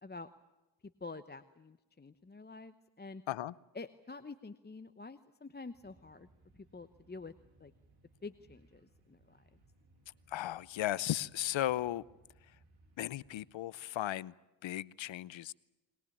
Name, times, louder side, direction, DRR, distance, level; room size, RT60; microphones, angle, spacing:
voice 1, 0.8-3.2 3.7-6.3 6.5-7.3 7.6-7.7 8.2-9.6, left 3 dB, 20° left, 11 dB, 1.0 m, -48 dB
sound 1, 5.7-13.5, right 2 dB, 60° right, 6.6 m, -66 dB
voice 2, 10.3-12.0 13.0-14.3 14.6-15.5, left 14 dB, 80° left, 21 dB, 0.8 m, -36 dB
22.0 x 21.0 x 8.6 m, 1.0 s
cardioid pair, 85°, 45 cm